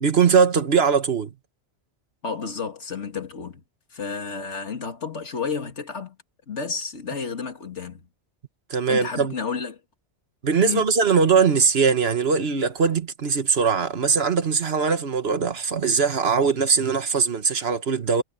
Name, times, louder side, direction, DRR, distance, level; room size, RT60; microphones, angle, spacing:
voice 1, 0.0-1.3 8.7-9.3 10.4-18.2, right 5 dB, 60° right, 1.5 m, -21 dB
voice 2, 2.2-3.6 3.9-6.2 6.5-8.1 8.9-9.8 10.6-10.9, left 5 dB, 85° left, 2.3 m, -31 dB
omnidirectional pair, 1.2 m